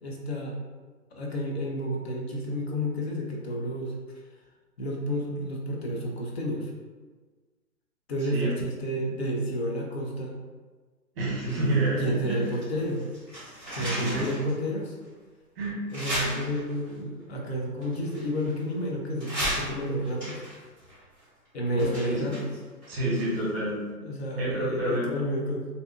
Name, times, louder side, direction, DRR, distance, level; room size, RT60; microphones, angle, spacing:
voice 1, 0.0-0.5 1.1-3.9 4.8-6.7 8.1-10.4 12.0-13.0 13.7-15.0 15.9-20.4 21.5-22.5 24.0-25.7, equal, 45° left, -1 dB, 0.5 m, -30 dB
voice 2, 11.2-12.4 13.8-14.3 15.6-15.8 16.2-16.3 19.6-19.7 21.7-22.2 22.9-23.8 24.4-25.1, right 1 dB, 40° right, -5 dB, 0.9 m, -28 dB
sound 1, 11.4-12.7 13.0-14.5 15.0-15.1 15.9-16.9 17.8-18.8 19.2-23.6 23.9-24.0, equal, 10° left, 0.9 m, -35 dB
2.7 x 2.3 x 2.4 m, 1.4 s
hypercardioid pair, 145°, 46 cm